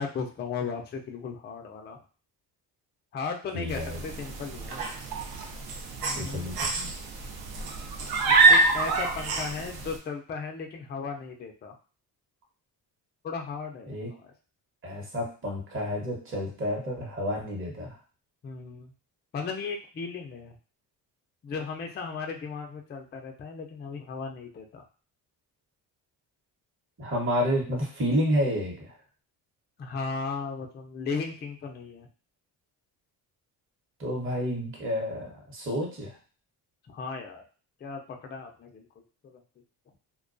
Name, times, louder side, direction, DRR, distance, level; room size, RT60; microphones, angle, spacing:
voice 1, 0.0-2.0 3.1-4.8 6.0-6.6 8.3-11.7 13.2-14.3 18.4-18.9 19.3-20.5 21.4-24.8 29.8-32.1 36.9-37.4 37.8-39.4, left 5 dB, 25° left, 3 dB, 0.4 m, -36 dB
voice 2, 3.5-4.0 6.1-6.9 13.9-14.1 14.8-18.0 27.0-28.9 34.0-36.1, equal, 30° right, -2 dB, 0.9 m, -30 dB
sound 1, 3.7-10.0, right 3 dB, 60° right, 0.6 m, -26 dB
2.3 x 2.2 x 2.5 m, 0.38 s
cardioid pair, 85°, 42 cm